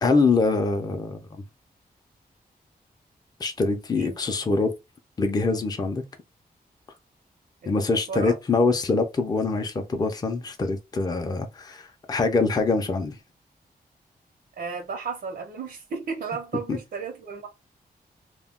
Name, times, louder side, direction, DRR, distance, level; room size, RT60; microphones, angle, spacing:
voice 1, 0.0-1.4 3.4-4.7 5.2-6.0 7.7-13.2 16.7-16.8, left 3 dB, 25° left, 0.4 m, -24 dB
voice 2, 7.6-8.4 14.6-17.5, right 5 dB, 85° right, 0.7 m, -34 dB
2.2 x 2.1 x 3.5 m
wide cardioid pair, 175°, 16 cm